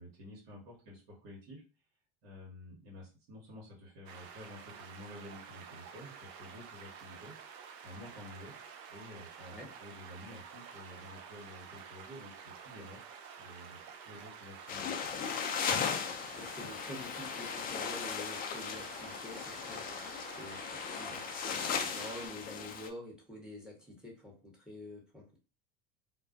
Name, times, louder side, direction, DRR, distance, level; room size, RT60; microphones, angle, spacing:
voice 1, 0.0-1.6 2.2-7.4 7.8-8.5 8.9-13.1 13.4-15.0, left 1 dB, 75° right, -2 dB, 1.2 m, -51 dB
sound 1, 4.1-22.3, right 6 dB, 55° right, 0.5 m, -50 dB
sound 2, 14.7-22.9, left 6 dB, 30° left, 0.4 m, -37 dB
voice 2, 16.4-20.0 20.4-25.4, left 1 dB, 5° right, -1 dB, 0.9 m, -48 dB
2.3 x 2.2 x 2.4 m, 0.33 s
hypercardioid pair, 85°, 30 cm